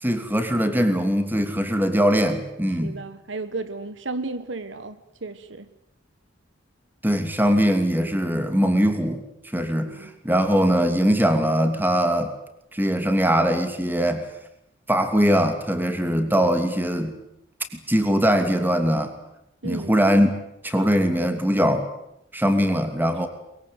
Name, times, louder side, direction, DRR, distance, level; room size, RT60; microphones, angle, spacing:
voice 1, 0.0-3.0 7.0-9.2 9.5-12.3 12.7-14.3 14.9-17.2 17.9-19.1 19.6-20.3 20.6-21.9 22.3-23.3, equal, 10° right, 7 dB, 2.8 m, -21 dB
voice 2, 2.8-5.7 9.8-10.1 16.4-16.5 19.6-19.9, right 3 dB, 65° right, 12 dB, 1.3 m, -33 dB
23.0 x 22.5 x 9.2 m, 0.81 s
head